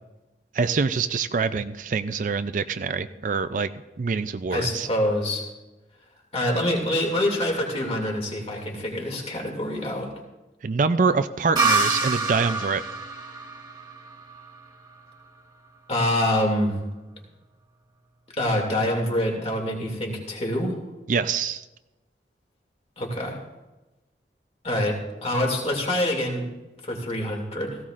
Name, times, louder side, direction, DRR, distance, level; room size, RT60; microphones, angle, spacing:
voice 1, 0.5-3.7 4.0-4.9 10.6-12.8 21.1-21.6, right 4 dB, 45° right, 11 dB, 0.4 m, -25 dB
voice 2, 4.5-5.4 6.3-10.1 15.9-16.8 18.4-20.8 23.0-23.4 24.6-26.5 26.8-27.8, left 1 dB, 35° left, 0 dB, 2.4 m, -25 dB
sound 1, 11.6-15.1, right 3 dB, 25° right, 1.6 m, -26 dB
17.0 x 15.5 x 2.5 m, 1.1 s
head